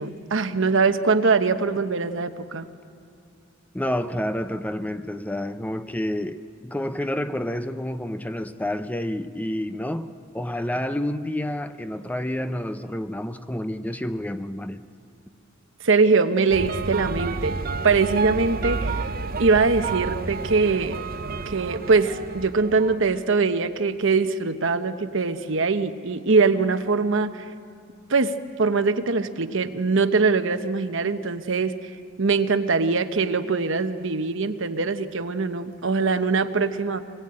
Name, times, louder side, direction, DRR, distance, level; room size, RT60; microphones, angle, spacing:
voice 1, 0.0-2.7 15.8-17.6 17.8-19.1 19.4-21.0 21.5-27.4 28.1-28.3 28.6-31.7 32.2-37.0, right 4 dB, 65° right, 9 dB, 1.0 m, -22 dB
voice 2, 3.7-14.8, left 1 dB, 10° left, 10 dB, 0.6 m, -29 dB
sound 1, 16.5-23.2, right 4 dB, 45° right, 0.7 m, -30 dB
25.0 x 20.5 x 8.7 m, 2.4 s
head